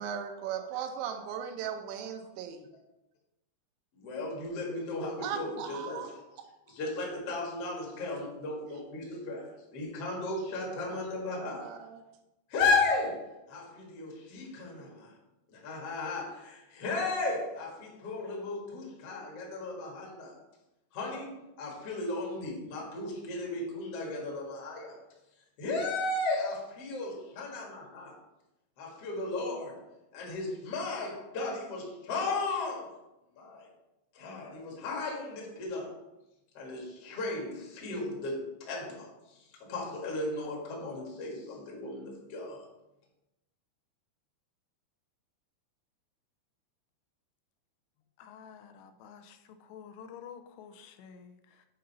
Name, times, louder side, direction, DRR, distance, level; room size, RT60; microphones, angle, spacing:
voice 1, 0.0-2.7 5.2-6.1 10.8-11.0 11.4-12.0, right 8 dB, 85° right, 5 dB, 3.1 m, -38 dB
voice 2, 3.9-6.2 6.7-11.7 12.5-15.2 15.5-20.4 20.9-25.0 25.6-28.1 28.8-29.8 30.1-32.9 33.3-33.7 34.1-36.0 36.5-42.7, left 3 dB, 55° left, -2 dB, 1.7 m, -35 dB
voice 3, 48.2-51.7, left 7 dB, 80° left, 8 dB, 2.6 m, -50 dB
7.9 x 3.9 x 5.4 m, 0.95 s
omnidirectional pair, 5.3 m